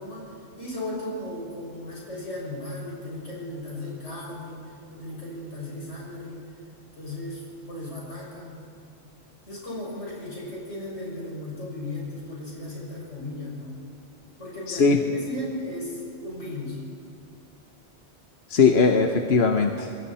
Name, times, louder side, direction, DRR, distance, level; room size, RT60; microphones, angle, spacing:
voice 1, 0.0-6.5 6.9-8.7 9.5-13.7 14.4-16.8, left 1 dB, 80° left, -5 dB, 6.8 m, -36 dB
voice 2, 14.7-15.0 18.5-20.1, left 4 dB, 60° left, 4 dB, 1.2 m, -20 dB
27.0 x 23.0 x 4.3 m, 2.5 s
omnidirectional pair, 1.2 m